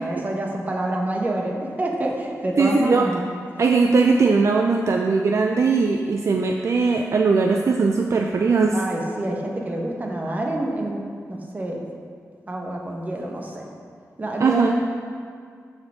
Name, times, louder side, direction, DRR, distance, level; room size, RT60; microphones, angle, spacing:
voice 1, 0.0-3.3 8.7-11.8 12.5-13.7 14.2-14.7, right 1 dB, 30° right, 0 dB, 1.3 m, -27 dB
voice 2, 2.6-3.1 3.6-8.8 14.4-14.7, right 4 dB, 50° right, 2 dB, 0.5 m, -19 dB
14.0 x 6.2 x 3.7 m, 2.1 s
wide cardioid pair, 150°, 6 cm